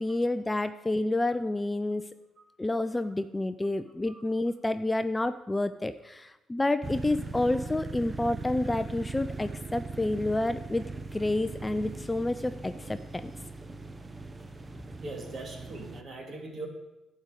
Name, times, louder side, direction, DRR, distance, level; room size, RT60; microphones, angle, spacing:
voice 1, 0.0-2.0 2.6-10.8 11.1-13.3, left 2 dB, 15° left, 11 dB, 0.4 m, -29 dB
sound 1, 6.8-16.0, right 3 dB, 25° right, 0.8 m, -40 dB
voice 2, 15.0-16.7, right 2 dB, 45° right, 3 dB, 2.5 m, -41 dB
11.0 x 5.2 x 8.1 m, 1.0 s
cardioid pair, 85°, 0 cm